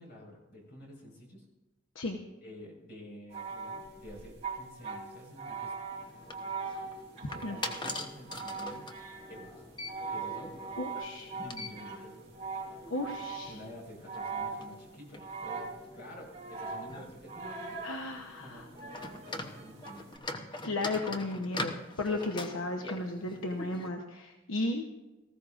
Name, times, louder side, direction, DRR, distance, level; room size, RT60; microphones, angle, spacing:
voice 1, 0.0-1.4 2.4-5.9 7.3-8.9 9.3-9.6 10.1-10.6 11.3-12.2 13.5-17.9 18.4-20.1, equal, 55° left, -1 dB, 4.8 m, -49 dB
sound 1, 3.3-13.7 14.0-14.9 15.2-16.0 16.3-18.0 18.8-20.2, right 4 dB, 30° right, 3.9 m, -41 dB
sound 2, 5.9-23.9, left 2 dB, 25° left, 0.8 m, -44 dB
voice 2, 10.8-11.3 12.9-13.6 17.8-18.7 20.6-24.9, left 2 dB, 80° left, 2 dB, 0.9 m, -34 dB
18.5 x 15.0 x 2.5 m, 1.1 s
head